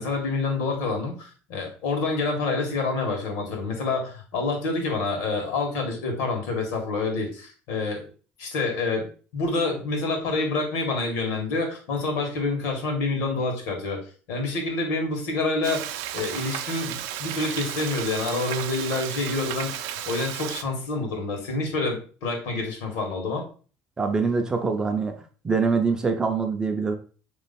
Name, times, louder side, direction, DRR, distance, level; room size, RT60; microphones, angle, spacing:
voice 1, 0.0-8.0 8.4-9.1 9.3-14.0 14.3-23.4, left 3 dB, 80° left, 2 dB, 1.6 m, -27 dB
Frying (food), 15.6-20.6, right 11 dB, 80° right, 0.4 m, -33 dB
voice 2, 24.0-25.1 25.4-27.0, right 4 dB, 15° right, 5 dB, 0.4 m, -24 dB
3.7 x 3.1 x 4.1 m, 0.38 s
cardioid pair, 175°, 5 cm